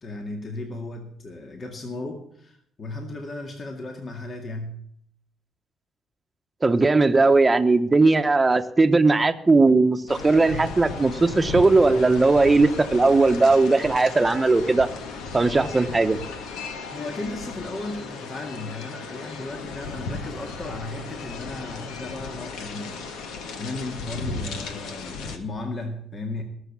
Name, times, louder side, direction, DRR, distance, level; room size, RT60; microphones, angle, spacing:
voice 1, 0.0-4.8 15.3-15.5 16.9-23.1 23.6-26.4, left 2 dB, 40° left, 3 dB, 2.0 m, -35 dB
voice 2, 6.6-14.9 15.3-16.2, right 3 dB, 20° right, 8 dB, 1.0 m, -18 dB
sound 1, 10.1-25.4, left 4 dB, 90° left, 1.6 m, -35 dB
18.0 x 7.2 x 7.4 m, 0.68 s
cardioid pair, 90°, 0 cm